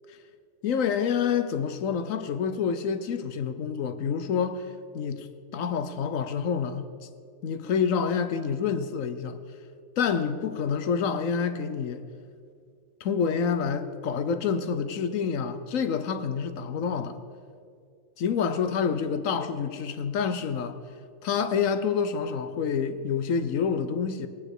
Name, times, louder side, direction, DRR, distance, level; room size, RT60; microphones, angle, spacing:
voice 1, 0.6-4.7 4.9-6.9 7.4-9.4 10.0-12.0 13.0-17.2 18.2-20.8 21.2-24.3, left 6 dB, 75° left, 1.2 m, -27 dB
21.0 x 8.9 x 4.9 m
omnidirectional pair, 1.4 m